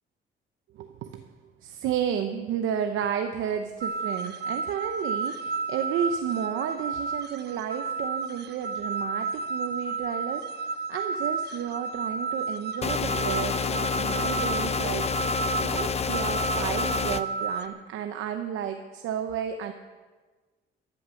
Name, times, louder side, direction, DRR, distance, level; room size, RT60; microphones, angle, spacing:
voice 1, 0.8-1.3 1.6-15.1 15.6-19.7, right 8 dB, 90° right, 6 dB, 0.9 m, -32 dB
sound 1, 3.8-17.7, right 4 dB, 55° right, 1.0 m, -32 dB
sound 2, 12.8-17.2, left 6 dB, 30° left, 0.7 m, -28 dB
14.5 x 11.5 x 6.5 m, 1.3 s
cardioid pair, 90°, 20 cm